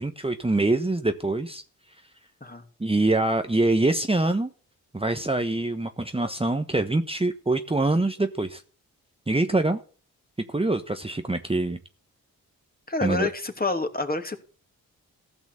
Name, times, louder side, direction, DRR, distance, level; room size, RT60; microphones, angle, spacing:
voice 1, 0.0-1.6 2.8-4.5 4.9-8.6 9.3-9.8 10.5-11.8 13.0-13.3, right 2 dB, 15° right, 7 dB, 1.2 m, -24 dB
voice 2, 12.9-14.4, left 3 dB, 25° left, 6 dB, 2.9 m, -28 dB
15.0 x 6.1 x 7.1 m, 0.39 s
supercardioid pair, 40°, 37 cm